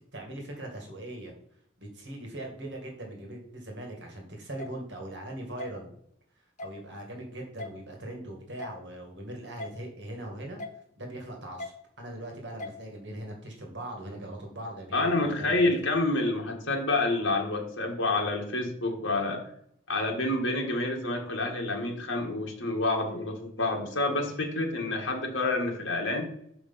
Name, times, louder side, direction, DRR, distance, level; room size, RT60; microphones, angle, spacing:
voice 1, 0.0-1.3 1.8-5.9 6.6-10.6 11.0-15.7, right 1 dB, 60° right, 1 dB, 1.9 m, -40 dB
sound 1, 4.6-4.7 5.6-5.7 6.6-6.8 7.6-7.7 8.6-8.8 9.6-9.7 10.6-10.8 11.6-11.7 12.6-12.8, left 2 dB, 40° left, 1.0 m, -38 dB
voice 2, 14.9-19.4 19.9-26.3, left 2 dB, 80° left, 1 dB, 1.7 m, -28 dB
6.3 x 5.0 x 5.6 m, 0.68 s
head